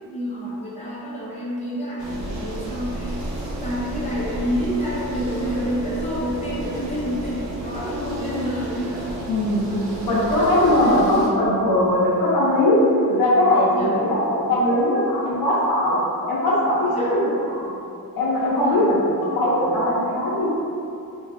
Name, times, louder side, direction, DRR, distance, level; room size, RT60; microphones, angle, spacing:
voice 1, 0.1-3.3 3.6-9.1 9.7-9.9 10.8-11.1 13.7-14.0 16.9-17.1 18.5-18.9, equal, 20° left, -8 dB, 0.6 m, -28 dB
sound 1, 2.0-11.3, right 1 dB, 75° right, 0.7 m, -32 dB
voice 2, 9.3-9.7 10.0-12.8 13.1-16.0 16.3-17.7 18.2-19.0 19.3-20.5, left 1 dB, 70° left, -10 dB, 0.7 m, -20 dB
3.9 x 2.3 x 2.5 m, 2.7 s
wide cardioid pair, 175°, 37 cm